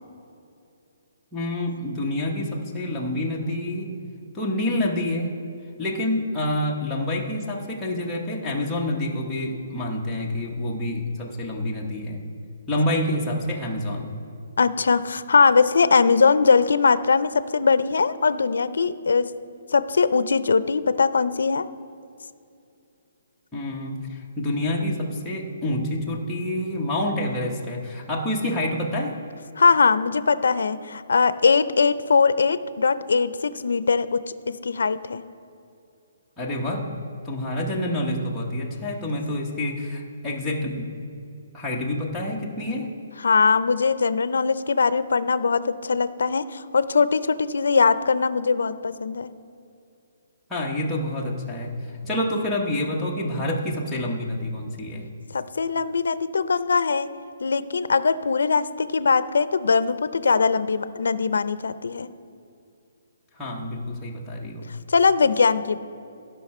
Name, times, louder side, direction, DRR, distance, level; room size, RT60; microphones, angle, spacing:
voice 1, 1.3-3.9 4.3-5.3 5.8-12.2 12.7-14.1 23.5-29.1 36.4-36.8 37.2-40.9 41.5-42.9 50.5-55.1 63.4-64.6, left 1 dB, 5° left, -4 dB, 0.9 m, -27 dB
voice 2, 14.6-19.3 19.7-21.6 29.6-34.2 34.5-35.2 43.2-49.3 55.3-57.1 57.4-62.1 64.9-65.8, left 5 dB, 85° left, 14 dB, 0.5 m, -21 dB
16.5 x 5.7 x 4.2 m, 2.6 s
hypercardioid pair, 175°, 0 cm